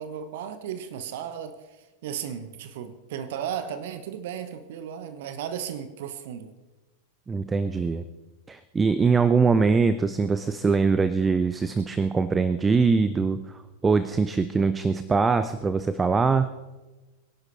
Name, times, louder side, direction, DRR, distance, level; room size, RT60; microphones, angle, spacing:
voice 1, 0.0-1.6 2.0-6.5, right 8 dB, 55° right, 11 dB, 1.1 m, -35 dB
voice 2, 7.3-8.0 8.5-13.4 13.8-16.5, right 4 dB, 15° right, 13 dB, 0.6 m, -22 dB
23.5 x 11.0 x 4.3 m, 1.2 s
figure-of-eight pair, 90°, 0 cm